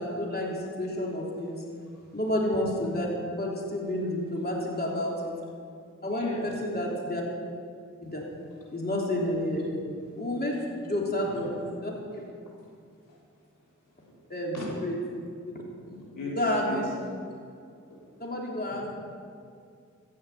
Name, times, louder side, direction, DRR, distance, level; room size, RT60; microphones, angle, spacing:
voice 1, 0.0-1.6 2.1-3.1 3.4-5.3 6.0-7.2 8.0-8.2 8.7-10.6 10.8-11.9 14.3-14.6 14.8-15.0 16.3-16.9 18.2-18.9, left 1 dB, 30° left, -3 dB, 3.5 m, -30 dB
voice 2, 6.1-6.4 13.1-13.2 14.5-14.7 15.9-16.3 16.7-16.8 17.9-18.0, left 3 dB, 85° left, -5 dB, 3.8 m, -38 dB
15.5 x 6.5 x 8.6 m, 2.3 s
cardioid pair, 50°, 31 cm